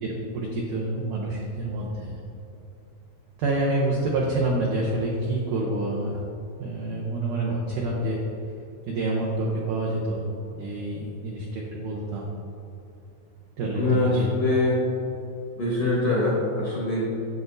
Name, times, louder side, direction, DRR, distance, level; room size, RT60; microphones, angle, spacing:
voice 1, 0.0-2.2 3.4-6.2 6.6-8.2 8.9-12.3 13.6-14.3, right 2 dB, 85° right, -4 dB, 1.8 m, -27 dB
voice 2, 13.7-14.8 15.5-17.1, left 2 dB, 70° left, -7 dB, 1.4 m, -23 dB
8.5 x 7.7 x 2.6 m, 2.7 s
omnidirectional pair, 4.8 m